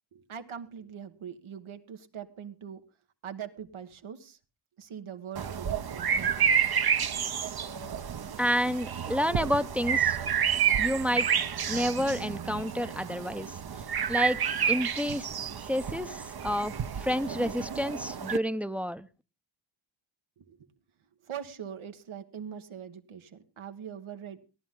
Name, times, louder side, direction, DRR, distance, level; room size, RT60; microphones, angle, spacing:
voice 1, 0.1-2.8 3.2-4.4 4.8-6.6 20.4-20.7 21.2-24.4, right 8 dB, 80° right, 7 dB, 1.7 m, -42 dB
sound 1, 5.3-18.4, right 8 dB, 50° right, 1.0 m, -30 dB
voice 2, 8.4-10.2 10.8-11.3 11.7-13.6 14.1-14.4 14.7-15.3 15.7-19.1, equal, 5° right, 12 dB, 0.8 m, -29 dB
18.0 x 11.5 x 3.8 m, 0.33 s
cardioid pair, 75°, 48 cm